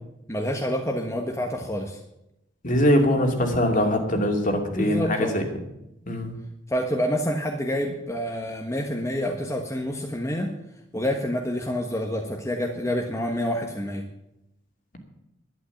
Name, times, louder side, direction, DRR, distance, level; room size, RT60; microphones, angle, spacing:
voice 1, 0.3-2.0 4.7-5.4 6.7-10.5 10.9-14.0, equal, 15° left, 1 dB, 1.4 m, -27 dB
voice 2, 2.6-5.4 6.1-6.4, equal, 45° left, 3 dB, 2.7 m, -22 dB
11.5 x 11.5 x 7.3 m, 0.85 s
head